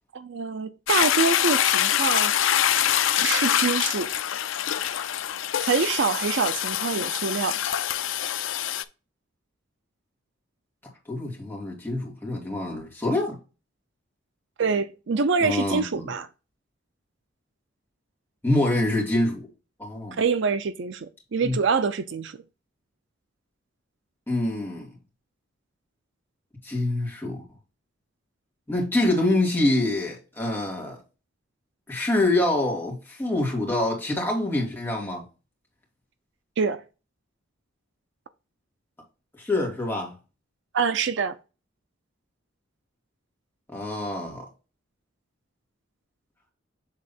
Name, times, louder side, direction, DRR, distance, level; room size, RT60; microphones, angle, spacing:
voice 1, 0.1-2.3 3.2-4.1 5.7-7.6 14.6-16.3 20.2-22.4 36.6-36.8 40.7-41.3, right 5 dB, 65° right, 0.5 m, -25 dB
Toilet flush, 0.9-8.8, left 10 dB, 70° left, 0.5 m, -25 dB
voice 2, 11.1-13.4 15.4-16.0 18.4-19.5 19.8-20.1 21.4-21.5 24.3-24.9 26.6-27.5 28.7-31.0 31.9-35.2 39.4-40.1 43.7-44.4, left 1 dB, 10° left, 2.4 m, -25 dB
7.3 x 3.6 x 4.2 m
head